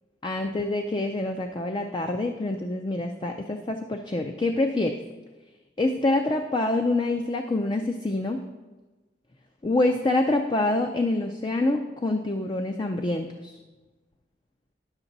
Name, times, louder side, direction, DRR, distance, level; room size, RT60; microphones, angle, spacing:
voice 1, 0.2-5.0 5.8-8.4 9.6-13.5, left 2 dB, 25° left, 5 dB, 0.4 m, -26 dB
10.0 x 7.2 x 4.0 m, 1.2 s
head